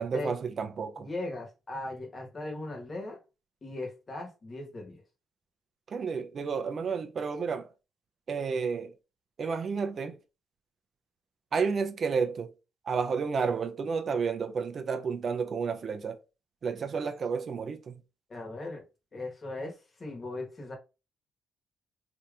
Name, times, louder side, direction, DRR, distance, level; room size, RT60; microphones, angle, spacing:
voice 1, 0.0-1.1 5.9-7.7 8.3-8.9 9.4-10.2 11.5-12.5 12.9-16.2 16.6-18.0, right 5 dB, 50° right, 0.4 m, -31 dB
voice 2, 1.0-3.2 3.6-5.0 18.3-18.8 19.1-20.8, left 2 dB, 35° left, 1.2 m, -38 dB
3.5 x 2.7 x 2.4 m
cardioid pair, 90°, 0 cm